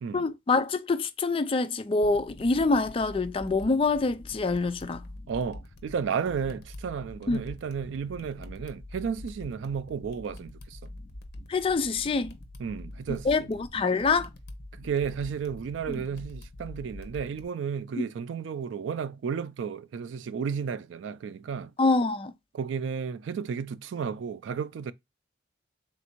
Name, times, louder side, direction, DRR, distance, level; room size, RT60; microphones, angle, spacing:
voice 1, 0.1-5.0 7.3-7.4 11.5-12.3 13.2-14.3 15.9-16.0 18.0-18.1 21.8-22.3, left 3 dB, 30° left, 0.3 m, -26 dB
sound 1, 2.0-17.4, left 1 dB, 55° left, 0.7 m, -45 dB
voice 2, 5.3-10.8 12.6-13.5 14.8-21.7 22.5-24.9, right 6 dB, 70° right, 0.3 m, -33 dB
3.5 x 2.5 x 4.3 m
head